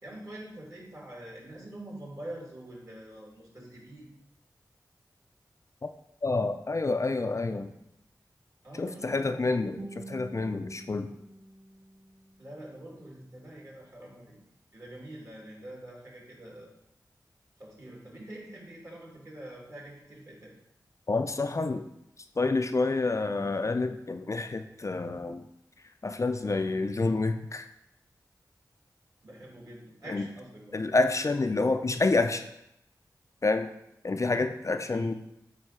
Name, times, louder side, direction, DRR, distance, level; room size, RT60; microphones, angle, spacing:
voice 1, 0.0-4.1 8.6-9.7 12.4-14.4 14.7-16.7 17.6-20.5 26.4-26.7 29.2-30.8 34.9-35.1, right 1 dB, 45° right, -3 dB, 2.7 m, -45 dB
voice 2, 6.2-7.7 8.8-11.1 21.1-21.8 22.4-25.4 26.0-27.7 30.1-30.2 30.7-32.5 33.4-33.7 34.0-35.1, left 3 dB, 45° left, 7 dB, 0.4 m, -28 dB
Guitar, 9.8-12.8, right 2 dB, 70° right, 1.5 m, -47 dB
7.8 x 2.7 x 5.7 m, 0.81 s
cardioid pair, 45°, 7 cm